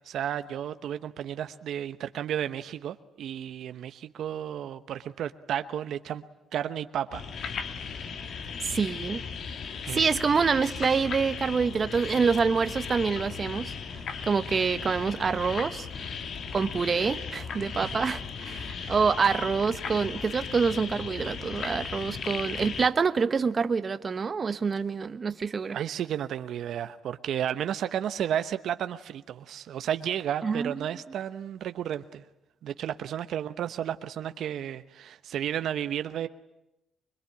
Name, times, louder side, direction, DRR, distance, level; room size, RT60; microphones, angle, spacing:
voice 1, 0.0-6.2 6.5-7.2 9.8-10.1 17.8-18.0 18.8-19.0 25.7-32.2 32.6-36.3, right 10 dB, 70° right, 1.0 m, -32 dB
sound 1, 7.1-22.9, left 6 dB, 65° left, 2.1 m, -37 dB
voice 2, 8.6-9.2 9.9-13.7 14.3-15.9 16.5-25.8 30.4-30.9, right 5 dB, 40° right, 1.1 m, -26 dB
25.5 x 22.5 x 9.8 m
cardioid pair, 90°, 0 cm